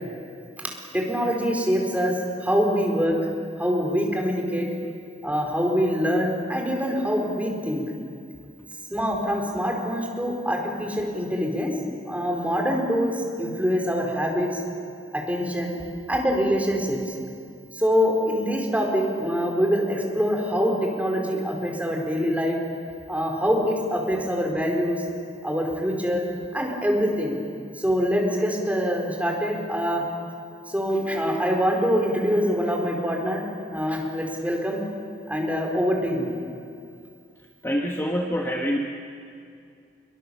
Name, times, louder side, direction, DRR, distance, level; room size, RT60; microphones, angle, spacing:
voice 1, 0.9-2.1 2.4-3.2 3.6-4.7 5.2-7.8 8.9-11.7 12.1-13.1 13.4-14.6 15.1-15.7 16.1-17.0 17.8-22.6 23.1-25.0 25.4-26.2 26.5-27.4 27.8-30.0 30.7-33.4 33.7-34.8 35.3-36.3, equal, 10° right, 0 dB, 4.5 m, -24 dB
voice 2, 37.6-38.8, equal, 15° left, 0 dB, 1.4 m, -25 dB
28.0 x 23.5 x 7.2 m, 2.4 s
head